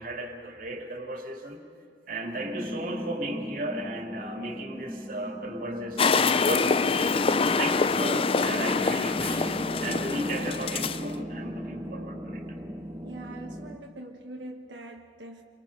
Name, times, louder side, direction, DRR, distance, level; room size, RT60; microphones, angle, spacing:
voice 1, 0.0-1.6 2.1-7.0 7.6-12.4, right 1 dB, 50° right, 2 dB, 2.6 m, -35 dB
sound 1, 2.3-13.8, equal, 15° right, 1.5 m, -38 dB
sound 2, 6.0-11.1, left 4 dB, 30° left, 0.5 m, -25 dB
voice 2, 13.0-15.4, right 1 dB, 85° right, 0 dB, 1.3 m, -43 dB
29.0 x 24.0 x 5.3 m, 2.5 s
head